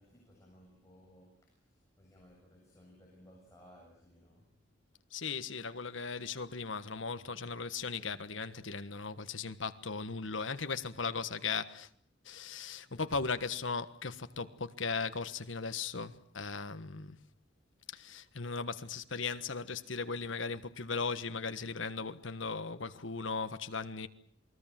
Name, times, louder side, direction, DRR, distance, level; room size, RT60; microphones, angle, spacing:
voice 1, 0.0-4.6 7.1-7.4, equal, 15° left, 7.6 m, -60 dB
voice 2, 5.1-11.9 12.2-17.2 17.9-24.1, left 4 dB, 80° left, 1.4 m, -37 dB
28.5 x 21.0 x 7.6 m
head